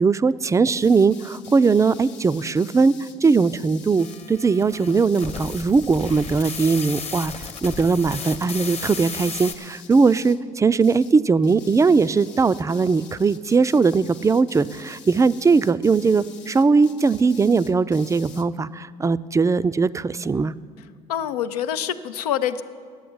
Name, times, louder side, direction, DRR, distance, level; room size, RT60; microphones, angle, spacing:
voice 1, 0.0-20.5, right 4 dB, 15° right, 15 dB, 0.3 m, -20 dB
sound 1, 0.7-4.3 4.8-6.9 7.2-10.5 10.8-11.2 11.4-18.5, left 8 dB, 65° left, 0.8 m, -46 dB
sound 2, 4.0-9.5, left 5 dB, 35° left, 0.9 m, -34 dB
voice 2, 21.1-22.6, left 10 dB, 90° left, 11 dB, 0.5 m, -25 dB
11.0 x 7.8 x 7.8 m, 2.1 s
hypercardioid pair, 60°, 19 cm